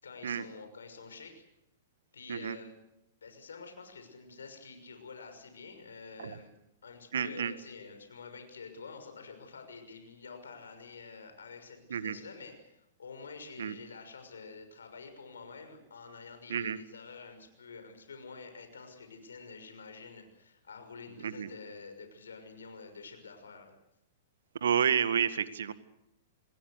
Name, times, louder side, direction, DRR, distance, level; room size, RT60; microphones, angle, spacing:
voice 1, 0.0-1.4 2.1-2.7 3.2-6.5 6.8-23.8, left 4 dB, 80° left, 7 dB, 6.2 m, -48 dB
voice 2, 7.1-7.5 11.9-12.2 13.6-13.8 16.5-16.8 21.2-21.5 24.6-25.7, right 8 dB, 75° right, 13 dB, 1.8 m, -30 dB
28.5 x 20.5 x 6.6 m, 0.86 s
hypercardioid pair, 110°, 0 cm